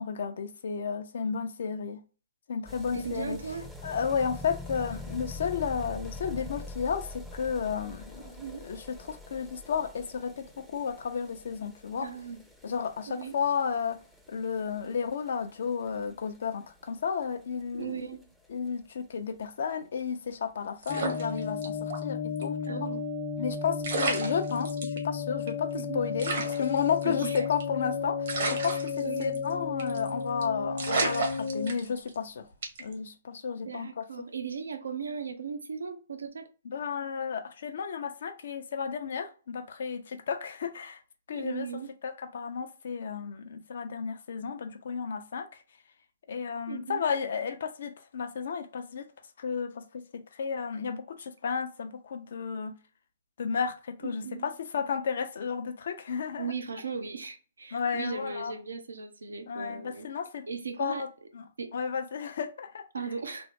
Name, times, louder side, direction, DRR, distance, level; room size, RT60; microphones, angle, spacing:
voice 1, 0.0-2.0 2.5-3.4 3.8-8.4 8.6-10.4 10.7-12.1 12.6-14.0 14.3-18.0 18.5-22.9 23.4-32.5 32.8-34.0 36.7-41.0 41.3-41.7 42.0-45.5 46.3-49.1 49.4-52.7 53.4-56.5 57.7-58.5 59.5-60.4 60.8-61.1 61.3-61.4 61.7-62.8, left 6 dB, 65° left, 0.6 m, -33 dB
sound 1, 2.7-19.4 19.7-19.8 20.0-20.1 20.3-20.4 20.7-20.8 21.4-21.5, left 2 dB, ahead, 0.5 m, -45 dB
voice 2, 2.9-3.7 8.2-8.7 12.0-12.4 13.1-13.4 17.7-18.2 22.7-23.0 25.7-26.1 27.0-27.5 28.6-28.7 29.0-29.4 33.7-36.5 41.3-41.9 46.7-47.0 54.2-54.5 56.4-60.1 60.5-61.1 61.6-61.7 62.9-63.5, right 6 dB, 85° right, 0.6 m, -37 dB
sound 2, 20.8-22.0 22.4-22.5 23.5-23.6 23.8-25.0 25.5-25.6 25.8-25.9 26.2-27.8 28.3-29.5 29.8-30.1 30.4-30.5 30.8-32.2 32.6-32.9, right 3 dB, 60° right, 1.1 m, -32 dB
sound 3, 20.9-31.7, left 5 dB, 45° left, 0.9 m, -33 dB
3.1 x 2.0 x 2.9 m
hypercardioid pair, 130°, 0 cm